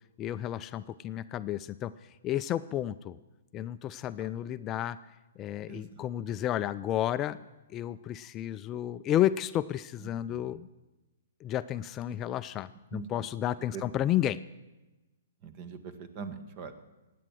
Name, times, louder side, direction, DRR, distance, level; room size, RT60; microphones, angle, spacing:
voice 1, 0.2-1.9 2.2-3.2 3.5-5.0 5.4-7.4 7.7-10.7 11.4-14.4, left 12 dB, 25° left, 13 dB, 0.3 m, -31 dB
voice 2, 5.7-6.0 10.0-10.6 12.9-13.2 13.7-13.8 15.4-16.7, right 6 dB, 40° right, 10 dB, 1.4 m, -43 dB
15.5 x 9.4 x 6.3 m, 1.1 s
hypercardioid pair, 130°, 0 cm